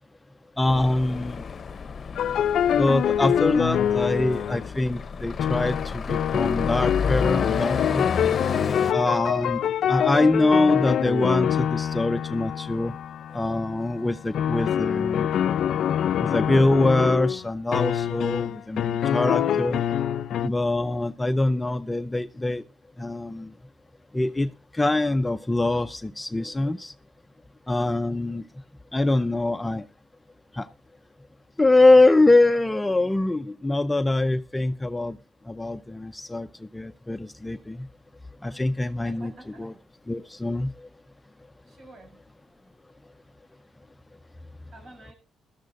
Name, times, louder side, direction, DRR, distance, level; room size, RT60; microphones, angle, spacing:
voice 1, 0.6-1.4 2.8-8.1 8.9-9.6 9.9-12.9 13.3-15.3 16.2-19.8 20.4-22.6 23.0-23.5 24.1-24.5 24.7-26.9 27.7-28.4 28.9-29.8 30.6-30.7 31.6-35.1 35.5-36.5 36.7-37.8 38.4-39.3 39.6-39.7 40.1-40.7, left 2 dB, 15° left, 10 dB, 0.6 m, -23 dB
sound 1, 0.7-8.9, left 6 dB, 45° left, 0.8 m, -31 dB
sound 2, 2.1-4.7 5.4-20.5, left 9 dB, 70° left, 0.5 m, -25 dB
voice 2, 39.0-39.8 41.6-42.2 44.7-45.1, right 2 dB, 45° right, 3 dB, 7.4 m, -48 dB
17.0 x 13.0 x 2.6 m, 0.33 s
cardioid pair, 90°, 0 cm